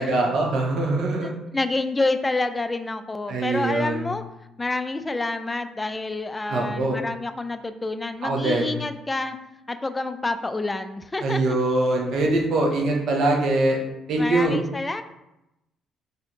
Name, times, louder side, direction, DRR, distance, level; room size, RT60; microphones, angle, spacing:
voice 1, 0.0-1.3 3.3-4.1 6.5-7.0 8.2-8.7 11.2-13.8 14.1-14.6, right 2 dB, 70° right, -1 dB, 0.7 m, -23 dB
voice 2, 1.2-4.2 4.6-9.4 9.7-11.6 14.2-15.0, left 2 dB, 20° left, 9 dB, 0.3 m, -28 dB
4.1 x 2.6 x 2.9 m, 0.91 s
supercardioid pair, 75°, 0 cm